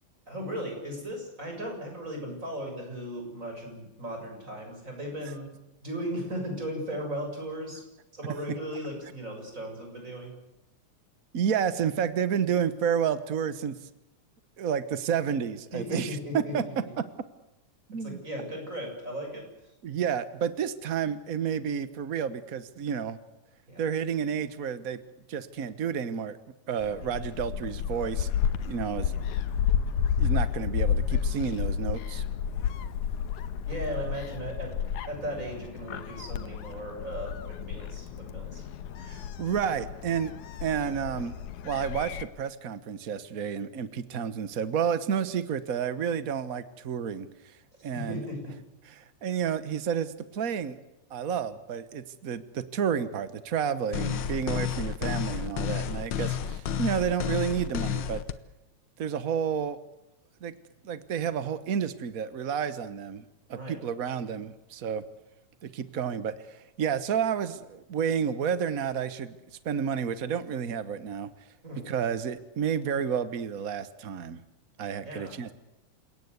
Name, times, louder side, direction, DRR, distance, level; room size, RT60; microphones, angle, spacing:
voice 1, 0.3-5.5 5.8-7.8 8.1-10.3 15.7-16.9 18.0-19.7 23.7-23.9 29.2-29.4 33.7-38.6 47.9-48.6 63.5-63.8 71.6-71.9 75.0-75.3, equal, 25° right, 2 dB, 7.4 m, -37 dB
voice 2, 11.3-13.8 14.6-16.6 17.9-18.2 19.8-23.2 23.8-25.0 25.3-26.4 26.7-28.3 28.6-29.1 30.2-32.2 39.0-40.3 40.6-41.4 41.6-47.3 47.8-48.2 48.9-50.8 51.1-58.2 59.0-59.8 60.4-60.5 60.8-63.2 63.5-65.0 65.6-69.4 69.6-71.3 71.9-74.4 74.8-75.5, right 7 dB, 85° right, 13 dB, 0.7 m, -30 dB
Gull seagull, 26.8-42.2, left 8 dB, 85° left, 2.6 m, -31 dB
sound 1, 53.9-58.3, left 9 dB, 65° left, 1.1 m, -31 dB
28.5 x 18.0 x 8.1 m, 0.94 s
omnidirectional pair, 3.3 m